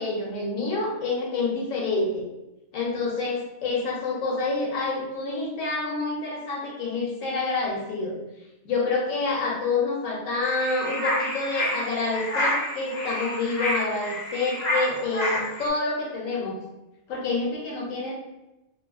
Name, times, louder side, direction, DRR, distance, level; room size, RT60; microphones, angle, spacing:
voice 1, 0.0-2.2 2.7-8.2 8.6-16.6 17.1-18.1, left 3 dB, 75° left, -2 dB, 0.9 m, -27 dB
sound 1, 10.4-15.7, left 1 dB, 50° left, 0.5 m, -28 dB
2.6 x 2.3 x 2.3 m, 0.95 s
omnidirectional pair, 1.4 m